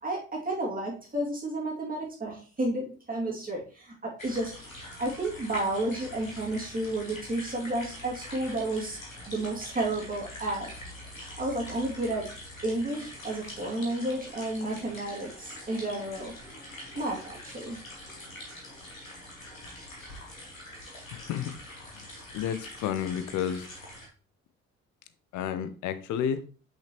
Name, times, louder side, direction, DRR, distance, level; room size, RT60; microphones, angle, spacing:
voice 1, 0.0-4.5 5.0-9.0 9.3-10.7 11.4-12.3 12.6-16.3 16.9-17.8, right 1 dB, 20° right, 2.5 m, -31 dB
sound 1, 4.2-24.1, left 1 dB, 90° left, 1.3 m, -44 dB
voice 2, 21.1-21.5 22.3-23.7 25.3-26.4, left 9 dB, 50° left, 0.7 m, -31 dB
5.7 x 5.7 x 3.0 m
figure-of-eight pair, 45°, 39 cm